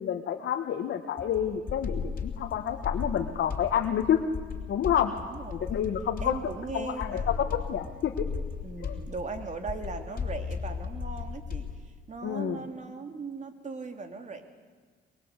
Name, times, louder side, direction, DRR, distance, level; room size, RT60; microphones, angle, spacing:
voice 1, 0.0-4.2 4.7-5.1 5.5-6.4 6.7-8.2 8.8-9.0 12.2-12.6, left 9 dB, 70° left, 3 dB, 1.7 m, -29 dB
sound 1, 1.2-11.8, left 5 dB, 45° left, 3.4 m, -36 dB
voice 2, 5.2-5.9 6.2-7.6 8.6-14.4, right 4 dB, 35° right, 6 dB, 3.1 m, -39 dB
23.0 x 23.0 x 8.3 m, 1.6 s
cardioid pair, 90°, 20 cm